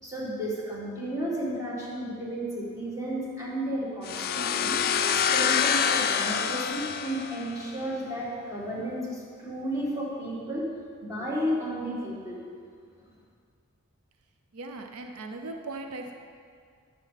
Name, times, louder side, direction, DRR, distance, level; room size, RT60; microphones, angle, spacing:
voice 1, 0.0-4.8 5.3-10.7 11.0-12.4, equal, 15° right, -6 dB, 2.1 m, -33 dB
sound 1, 4.1-7.8, left 7 dB, 45° left, 0.4 m, -26 dB
voice 2, 14.5-16.1, right 2 dB, 80° right, 5 dB, 0.6 m, -38 dB
10.5 x 7.0 x 4.1 m, 2.2 s
head